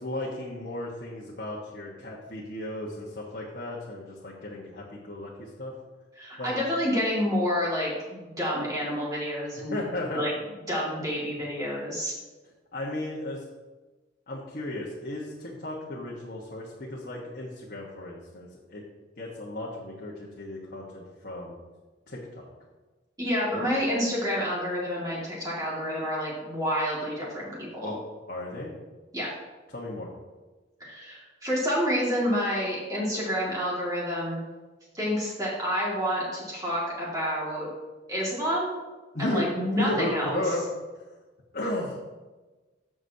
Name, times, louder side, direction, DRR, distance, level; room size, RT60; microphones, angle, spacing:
voice 1, 0.0-5.7 6.4-6.5 9.7-10.2 12.7-13.4 14.3-18.8 19.2-21.6 22.1-22.4 23.5-23.6 27.8-28.0 28.3-28.7 29.7-30.1 39.1-39.4 39.7-40.6 41.5-42.0, left 1 dB, 50° left, -4 dB, 1.2 m, -34 dB
voice 2, 6.2-9.8 10.1-10.3 10.7-12.1 23.2-28.0 29.1-29.3 30.8-34.4 34.9-37.7 38.1-38.7 39.2-40.4, equal, 20° right, -6 dB, 2.1 m, -28 dB
14.0 x 6.2 x 2.8 m, 1.2 s
head